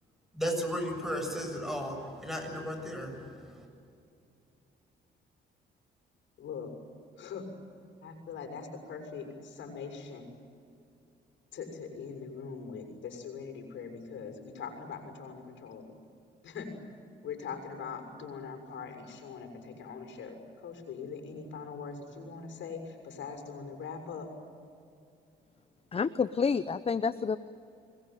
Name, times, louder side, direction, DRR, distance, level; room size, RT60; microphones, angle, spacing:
voice 1, 0.3-3.7, equal, ahead, 4 dB, 7.5 m, -35 dB
voice 2, 6.4-6.7 7.2-7.4 8.0-10.3 11.5-15.8 16.4-16.7 17.2-24.3, left 5 dB, 75° left, 6 dB, 6.7 m, -42 dB
voice 3, 25.9-27.4, left 5 dB, 30° left, 13 dB, 0.8 m, -29 dB
27.0 x 21.5 x 9.3 m, 2.5 s
cardioid pair, 90°, 20 cm